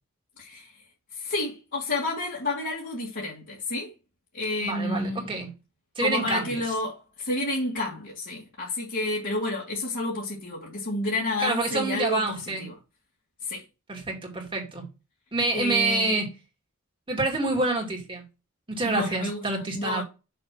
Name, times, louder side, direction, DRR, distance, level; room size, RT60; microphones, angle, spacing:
voice 1, 0.4-0.7 1.1-3.9 4.3-5.3 6.0-12.7 13.4-13.6 15.5-16.1 18.9-19.4 19.7-20.0, left 2 dB, 60° left, 2.3 m, -30 dB
voice 2, 4.6-5.5 6.0-6.6 11.4-12.7 13.9-14.9 15.3-16.3 17.1-18.2 18.7-20.0, right 2 dB, 25° right, 2.6 m, -27 dB
6.8 x 3.4 x 5.7 m
head